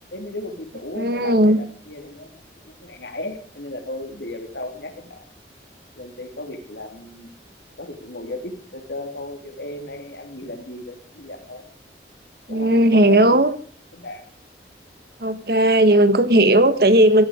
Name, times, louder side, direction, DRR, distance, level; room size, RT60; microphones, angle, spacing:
voice 1, 0.1-5.2 6.0-7.3 7.8-11.6 12.5-13.4 13.9-14.3, left 1 dB, 80° left, 5 dB, 3.1 m, -35 dB
voice 2, 0.9-1.6 12.5-13.5 15.2-17.2, right 1 dB, 60° right, 12 dB, 1.5 m, -16 dB
16.5 x 12.5 x 5.1 m, 0.43 s
head